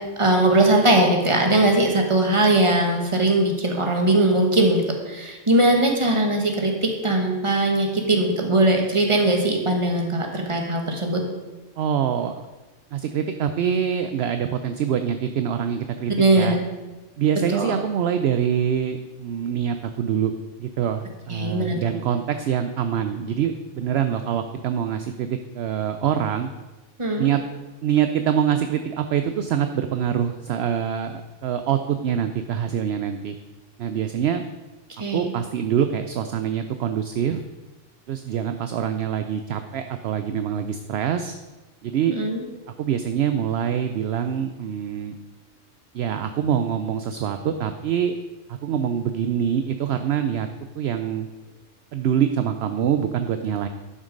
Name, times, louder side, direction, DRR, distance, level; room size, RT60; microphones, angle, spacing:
voice 1, 0.2-11.2 16.1-16.6 17.5-17.7 21.3-21.9 27.0-27.3 35.0-35.3 42.1-42.4, right 1 dB, 25° right, 2 dB, 1.5 m, -20 dB
voice 2, 11.8-12.4 12.9-16.6 17.2-20.3 20.6-26.5 27.2-27.4 27.8-33.4 33.8-34.4 35.1-37.4 38.1-41.3 41.8-42.2 42.8-45.1 45.9-48.1 48.5-50.5 50.8-51.3 51.9-53.7, right 8 dB, 65° right, 8 dB, 0.8 m, -25 dB
11.0 x 6.3 x 5.2 m, 1.2 s
omnidirectional pair, 1.3 m